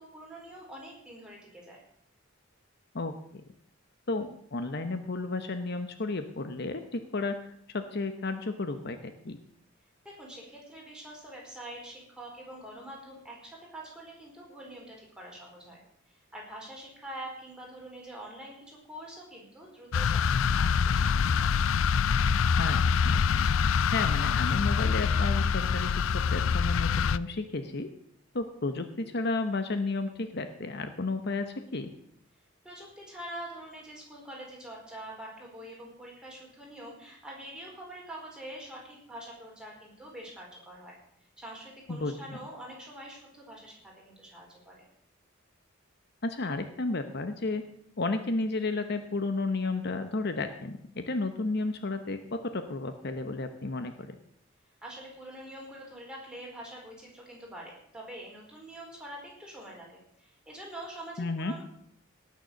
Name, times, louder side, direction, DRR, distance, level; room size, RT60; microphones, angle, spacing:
voice 1, 0.0-1.8 10.0-21.6 32.6-41.0 41.4-44.9 54.8-61.6, right 1 dB, 5° right, -3 dB, 4.4 m, -45 dB
voice 2, 4.1-9.4 22.6-23.2 23.9-27.9 28.3-31.9 41.9-42.4 46.2-47.6 48.0-53.9 61.2-61.5, left 3 dB, 55° left, 8 dB, 1.0 m, -32 dB
sound 1, 19.9-27.2, left 6 dB, 80° left, 0.4 m, -25 dB
18.0 x 6.8 x 6.5 m, 0.68 s
head